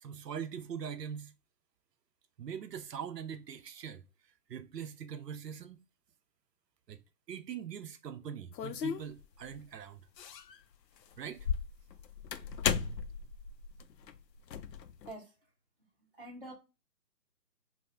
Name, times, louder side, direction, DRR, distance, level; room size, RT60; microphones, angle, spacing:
voice 1, 0.0-1.3 2.4-4.0 4.5-5.8 6.9-7.0 7.3-10.0 11.2-11.5, right 8 dB, 80° right, 0.6 m, -42 dB
sound 1, 8.5-9.6 10.2-10.6 11.0-15.1, left 7 dB, 85° left, 0.6 m, -36 dB
voice 2, 16.2-16.5, right 1 dB, 35° right, 0.5 m, -45 dB
3.4 x 2.0 x 3.3 m
hypercardioid pair, 175°, 48 cm